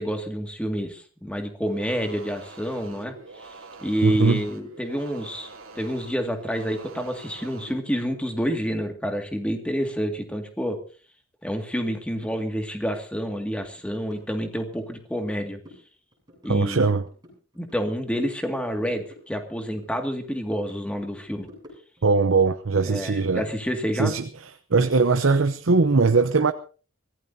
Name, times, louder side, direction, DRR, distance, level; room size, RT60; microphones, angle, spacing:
voice 1, 0.0-3.1 3.4-3.5 3.8-10.8 11.4-15.6 16.4-16.9 17.6-21.5 22.9-24.1, equal, 5° left, 2.1 m, -28 dB
sound 1, 1.7-7.8, right 3 dB, 85° right, 2.8 m, -44 dB
voice 2, 4.0-4.4 16.5-17.0 22.0-23.5 23.9-26.5, right 4 dB, 70° right, 0.8 m, -21 dB
sound 2, 12.2-12.3 12.7-12.9 13.1-13.3 13.6-14.9 15.2-15.8 16.1-17.9 18.1-19.9 20.2-22.1, left 1 dB, 20° right, 7.9 m, -50 dB
24.5 x 16.5 x 2.8 m
head